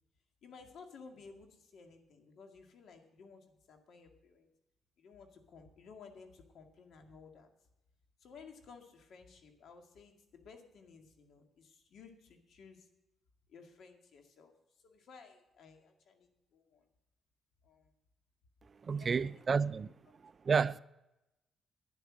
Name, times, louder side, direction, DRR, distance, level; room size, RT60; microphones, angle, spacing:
voice 1, 0.4-4.5 5.0-7.5 8.2-12.9 13.5-14.5 14.8-16.8 17.6-17.9 18.8-19.8, left 5 dB, 65° left, 2.1 m, -56 dB
voice 2, 18.8-19.9 20.4-20.8, right 5 dB, 40° right, 0.4 m, -30 dB
11.5 x 9.8 x 6.2 m
cardioid pair, 90°, 0 cm